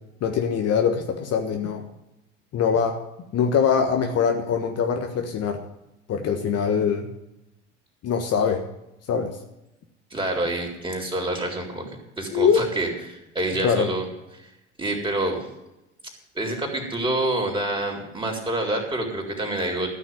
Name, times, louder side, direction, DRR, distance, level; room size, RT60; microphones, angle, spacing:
voice 1, 0.2-1.9 2.5-5.6 6.1-7.1 8.0-8.7 9.1-9.4 12.3-12.7 13.6-13.9, left 6 dB, 45° left, 4 dB, 1.4 m, -23 dB
voice 2, 10.1-11.8 12.2-14.0 14.4-14.5 14.8-15.4 16.3-20.0, right 1 dB, 15° right, 1 dB, 4.0 m, -27 dB
13.5 x 6.2 x 9.5 m, 0.91 s
hypercardioid pair, 70°, 36 cm